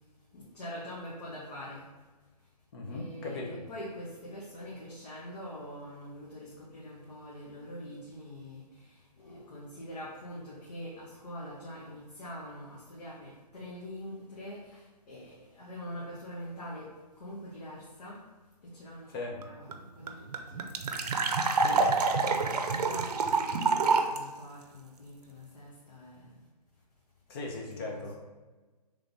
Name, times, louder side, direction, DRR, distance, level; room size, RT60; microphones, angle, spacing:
voice 1, 0.3-1.9 2.8-16.9 17.2-18.2 18.6-21.1 21.4-26.4 27.7-28.1, equal, 70° left, -6 dB, 1.2 m, -44 dB
voice 2, 2.7-3.6 9.2-9.5 19.1-19.4 21.6-22.0 27.3-28.1, left 2 dB, 35° left, 0 dB, 0.8 m, -39 dB
sound 1, 19.4-19.5 19.7-19.8 20.1-24.2, right 4 dB, 70° right, 0.5 m, -27 dB
3.9 x 3.3 x 3.4 m, 1.2 s
hypercardioid pair, 150°, 21 cm